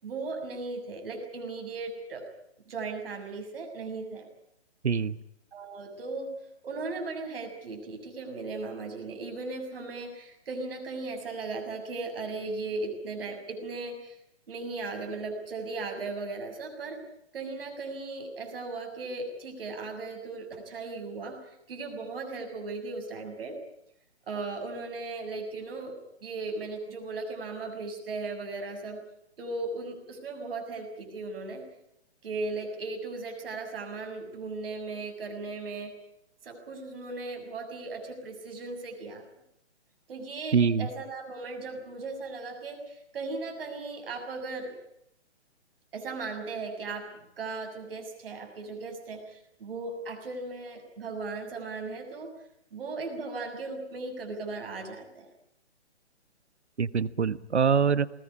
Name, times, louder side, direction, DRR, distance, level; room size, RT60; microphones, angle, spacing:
voice 1, 0.0-2.3 2.6-4.3 5.5-6.3 6.6-14.2 14.5-17.0 17.3-23.6 24.3-25.9 26.2-29.0 29.4-31.6 32.2-35.9 36.4-39.2 40.1-44.7 45.9-47.1 47.4-52.3 52.7-55.3, right 3 dB, 55° right, 4 dB, 6.8 m, -37 dB
voice 2, 4.8-5.2 40.5-40.9 56.8-58.1, right 6 dB, 70° right, 17 dB, 1.2 m, -24 dB
20.5 x 19.0 x 9.9 m, 0.79 s
figure-of-eight pair, 140°, 34 cm